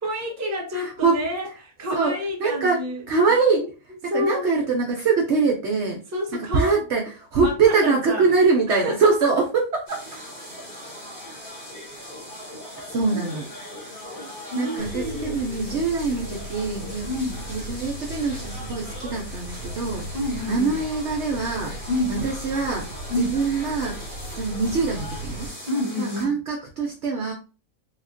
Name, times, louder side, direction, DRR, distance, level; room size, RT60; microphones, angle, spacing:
voice 1, 0.0-3.0 3.6-3.7 4.1-4.5 6.1-6.8 7.4-8.3 8.7-9.3 10.6-10.7 13.1-13.3 14.2-15.4 17.0-17.4 20.1-20.8 21.9-22.2 23.1-23.4 25.7-26.4, left 1 dB, 15° right, 0.6 m, -29 dB
voice 2, 0.7-1.2 1.9-2.1 2.4-2.8 3.1-3.7 4.0-6.0 6.3-10.0 12.8-13.5 13.7-14.2 14.6-17.1 17.5-20.1 20.5-21.7 22.1-24.0 24.3-25.5 26.0-27.3, right 4 dB, 60° right, 0.8 m, -23 dB
sound 1, 9.9-26.3, left 1 dB, 40° left, 1.3 m, -40 dB
sound 2, 14.8-25.5, right 1 dB, 15° left, 1.2 m, -37 dB
3.5 x 2.4 x 2.4 m
omnidirectional pair, 1.6 m